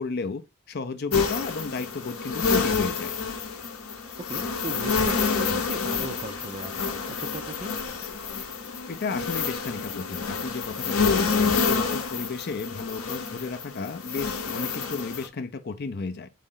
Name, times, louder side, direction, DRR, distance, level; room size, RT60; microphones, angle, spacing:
voice 1, 0.0-3.1 8.9-16.3, left 4 dB, 45° left, 0.5 m, -33 dB
sound 1, 1.1-15.3, left 5 dB, 75° left, 0.8 m, -28 dB
voice 2, 4.3-7.7, right 2 dB, 30° right, 0.5 m, -37 dB
4.1 x 3.1 x 3.7 m
head